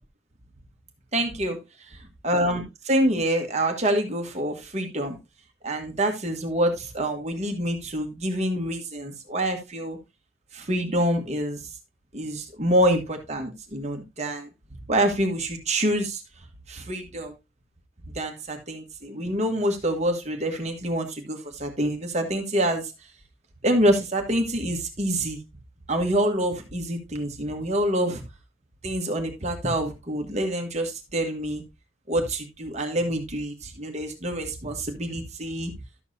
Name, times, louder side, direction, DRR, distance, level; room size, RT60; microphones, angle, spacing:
voice 1, 1.1-1.6 2.2-5.2 5.6-10.0 10.5-11.6 12.1-14.5 14.9-16.2 16.7-17.3 18.1-22.9 23.6-25.4 25.9-28.2 28.8-31.6 32.1-35.7, right 1 dB, 35° right, 4 dB, 1.4 m, -26 dB
12.0 x 7.2 x 2.7 m, 0.22 s
head